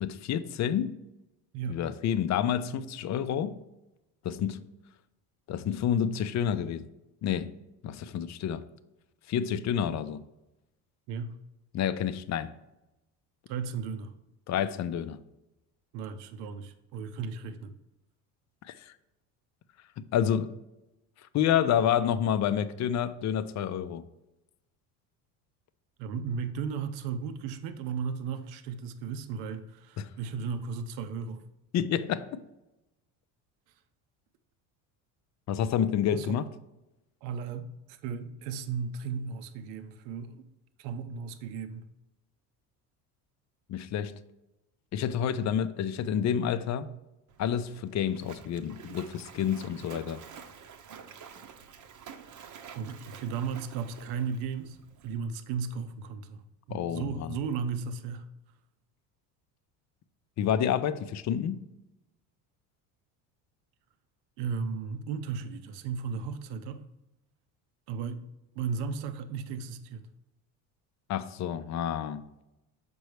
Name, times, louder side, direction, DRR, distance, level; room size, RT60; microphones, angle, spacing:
voice 1, 0.0-1.0 1.7-3.6 4.2-4.6 5.5-6.9 7.2-7.5 7.8-8.6 9.3-10.2 11.7-12.5 14.5-15.2 18.6-18.9 20.1-20.5 21.3-24.0 30.0-30.1 31.7-32.4 35.5-36.4 43.7-44.1 44.9-46.9 47.4-50.2 56.7-57.4 60.4-61.6 71.1-72.2, left 9 dB, 45° left, 0.5 m, -29 dB
voice 2, 13.5-14.1 15.9-17.7 26.0-31.4 36.1-36.4 37.2-40.5 40.8-41.9 52.7-54.8 55.0-58.2 64.4-66.8 67.9-68.3 68.5-70.1, right 6 dB, 75° right, 0.8 m, -35 dB
Splash splatter, 47.3-55.2, right 7 dB, 45° right, 0.8 m, -49 dB
6.7 x 5.3 x 3.2 m
supercardioid pair, 100°, 41 cm